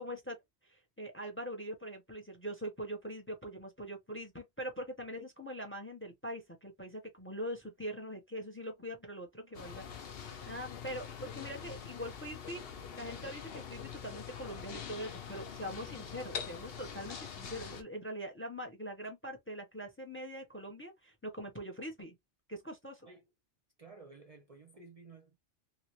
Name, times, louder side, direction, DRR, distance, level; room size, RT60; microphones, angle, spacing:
voice 1, 0.0-9.9 10.1-12.6 12.9-22.2 22.5-23.1, equal, 15° left, 0.7 m, -43 dB
sound 1, 9.5-17.8, left 7 dB, 60° left, 0.9 m, -44 dB
voice 2, 23.8-25.4, right 4 dB, 40° right, 0.6 m, -54 dB
3.1 x 2.9 x 2.9 m
omnidirectional pair, 1.2 m